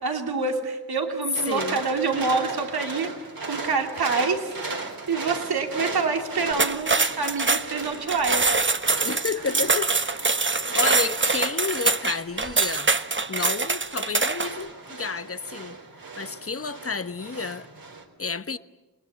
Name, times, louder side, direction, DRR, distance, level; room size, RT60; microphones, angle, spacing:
voice 1, 0.0-8.5, right 4 dB, 85° right, 2.9 m, -27 dB
sound 1, 1.3-18.0, right 3 dB, 65° right, 4.0 m, -37 dB
voice 2, 1.5-1.8 9.0-10.0 10.7-12.9 13.3-15.8 16.2-17.7 18.2-18.6, left 5 dB, 40° left, 1.2 m, -31 dB
sound 2, 6.5-14.6, right 3 dB, 30° right, 1.2 m, -24 dB
29.5 x 20.0 x 8.6 m
cardioid pair, 45°, 37 cm